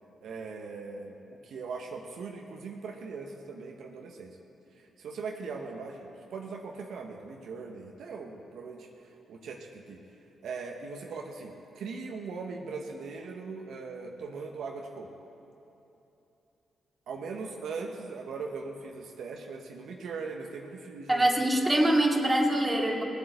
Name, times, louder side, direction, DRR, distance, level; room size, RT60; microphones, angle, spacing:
voice 1, 0.2-4.4 4.7-10.0 10.4-15.1 17.1-21.3, right 4 dB, 75° right, 2 dB, 1.0 m, -40 dB
voice 2, 21.1-23.0, right 1 dB, 20° right, 0 dB, 2.3 m, -24 dB
18.0 x 8.2 x 7.8 m, 2.9 s
supercardioid pair, 45°, 0 cm